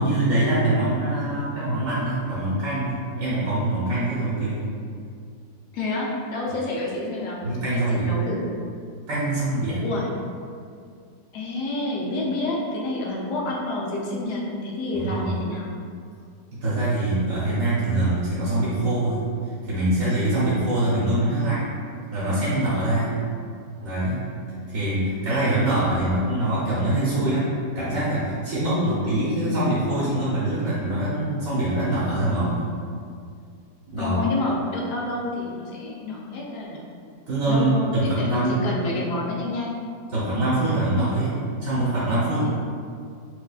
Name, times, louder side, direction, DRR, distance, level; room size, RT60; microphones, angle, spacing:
voice 1, 0.0-4.6 7.4-8.1 9.1-9.9 14.9-15.4 16.5-19.2 19.7-21.6 22.1-23.2 23.8-24.3 24.7-32.7 33.9-34.2 37.3-38.7 40.1-41.3 41.6-42.5, right 1 dB, 60° right, -9 dB, 1.0 m, -24 dB
voice 2, 5.7-7.5 7.7-8.4 9.8-10.1 11.3-15.7 34.0-36.9 37.5-39.8, left 2 dB, 75° left, -3 dB, 1.2 m, -28 dB
4.5 x 2.3 x 2.3 m, 2.3 s
omnidirectional pair, 1.8 m